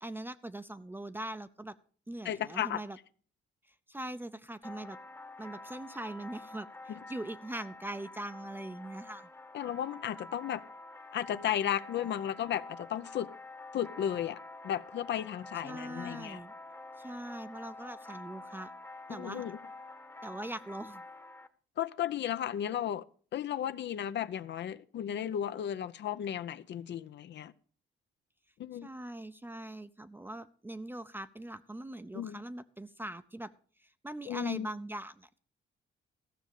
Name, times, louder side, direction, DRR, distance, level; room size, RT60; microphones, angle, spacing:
voice 1, 0.0-1.7 2.1-3.0 3.7-5.0 5.4-9.3 15.6-16.5 17.0-18.7 19.1-19.4 20.2-21.0 28.8-33.5 33.8-35.4, right 1 dB, 10° right, 0.6 m, -42 dB
voice 2, 2.2-2.8 6.9-7.0 9.5-10.6 11.1-13.3 13.7-16.4 19.1-19.6 21.8-23.0 23.3-27.5 28.6-28.9 32.1-32.4 34.3-34.7, left 10 dB, 65° left, 0.6 m, -34 dB
sound 1, 4.6-21.5, left 2 dB, 10° left, 1.0 m, -48 dB
14.5 x 6.2 x 6.6 m
cardioid pair, 90°, 20 cm